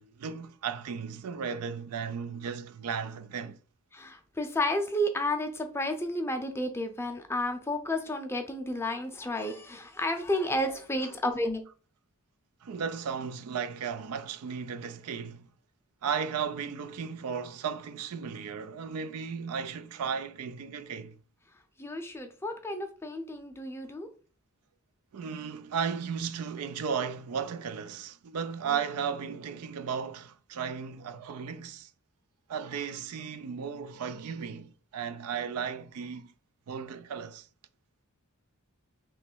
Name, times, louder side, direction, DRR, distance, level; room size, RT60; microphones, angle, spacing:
voice 1, 0.0-3.6 12.6-15.5 16.0-21.2 25.1-31.9 32.5-36.3 36.7-37.5, right 6 dB, 80° right, 0.4 m, -35 dB
voice 2, 3.9-11.6 21.8-24.1, left 1 dB, 10° left, 0.5 m, -31 dB
3.1 x 3.0 x 4.4 m
head